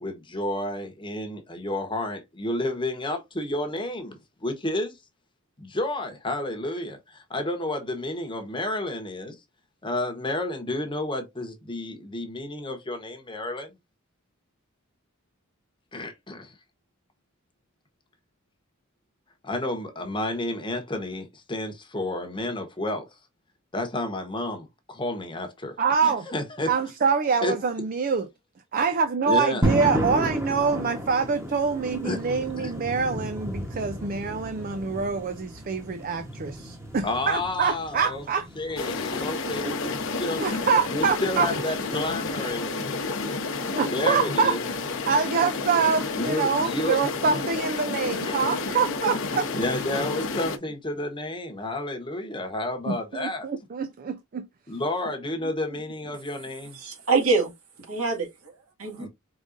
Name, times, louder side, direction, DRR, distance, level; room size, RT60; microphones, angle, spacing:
voice 1, 0.0-5.0 5.6-9.4 9.8-13.7 15.9-16.5 19.4-23.1 23.7-25.8 26.0-26.7 27.4-27.5 29.3-29.7 32.0-32.2 37.0-38.2 38.5-40.4 40.9-43.0 43.9-44.6 46.1-47.0 48.2-48.5 49.6-53.5 54.7-56.8 59.0-59.1, left 1 dB, 20° left, 1.0 m, -31 dB
voice 2, 25.8-26.3 26.7-28.3 28.7-38.5 39.6-39.8 40.4-41.5 43.7-44.8 45.1-49.5 52.9-54.5, right 5 dB, 40° right, 0.4 m, -25 dB
sound 1, 29.6-42.5, equal, 15° right, 1.1 m, -34 dB
sound 2, 38.8-50.6, left 3 dB, 60° left, 0.8 m, -30 dB
voice 3, 56.7-57.5 57.9-59.1, right 4 dB, 75° right, 2.0 m, -25 dB
4.9 x 3.7 x 2.6 m
head